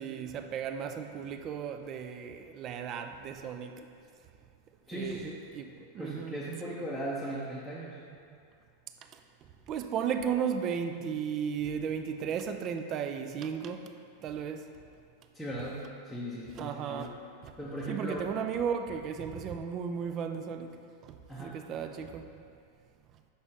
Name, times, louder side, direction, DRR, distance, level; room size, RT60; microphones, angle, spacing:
voice 1, 0.0-3.9 4.9-5.3 5.5-5.7 5.9-6.3 9.1-9.2 9.7-13.9 14.2-14.7 16.6-17.5 17.9-22.3, right 7 dB, 35° right, 0.4 m, -35 dB
voice 2, 4.9-5.4 5.8-8.0 15.3-17.2 17.6-18.3 21.3-21.6, right 1 dB, ahead, 0.7 m, -38 dB
5.8 x 5.4 x 3.2 m
figure-of-eight pair, 90°, 0 cm